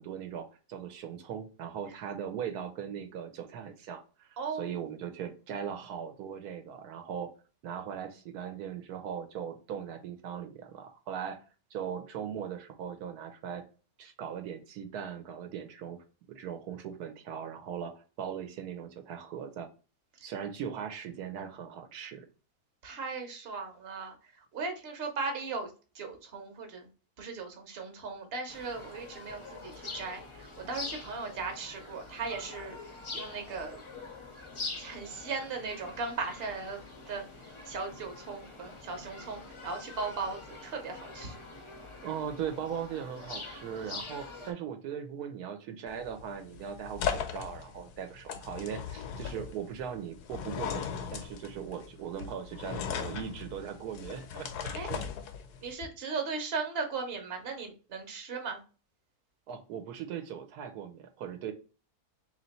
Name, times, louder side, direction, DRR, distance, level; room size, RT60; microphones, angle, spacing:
voice 1, 0.0-7.3 7.6-11.4 11.7-13.6 14.0-19.7 20.2-22.3 42.0-54.5 54.9-55.1 59.5-61.5, right 8 dB, 80° right, 7 dB, 1.1 m, -39 dB
voice 2, 4.4-4.8 22.8-26.9 27.2-33.8 34.7-37.2 37.6-41.4 54.7-54.9 55.6-58.6, right 4 dB, 45° right, 4 dB, 1.0 m, -37 dB
sound 1, 28.5-44.5, left 3 dB, 50° left, 0.3 m, -45 dB
sound 2, 45.9-55.7, left 7 dB, 90° left, 1.2 m, -38 dB
3.1 x 2.9 x 4.0 m, 0.34 s
omnidirectional pair, 1.6 m